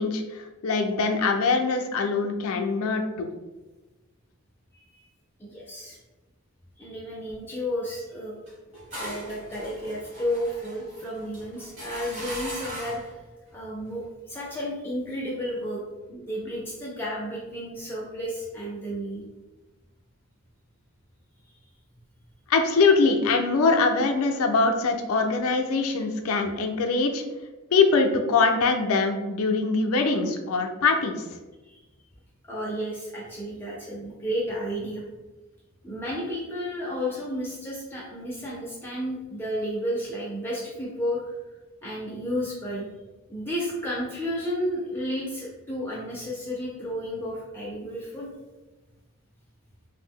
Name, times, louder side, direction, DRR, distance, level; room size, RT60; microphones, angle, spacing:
voice 1, 0.0-3.3 22.5-27.2 27.7-31.2, left 4 dB, 75° left, 4 dB, 0.4 m, -23 dB
voice 2, 5.4-6.0 6.8-8.3 8.9-13.0 13.5-15.8 16.1-19.2 31.6-31.8 32.5-35.0 35.8-41.3 41.8-42.9 43.3-48.3, equal, 10° left, -5 dB, 0.4 m, -32 dB
sound 1, 8.5-13.2, right 1 dB, 30° right, 1.0 m, -39 dB
2.6 x 2.1 x 3.5 m, 1.2 s
head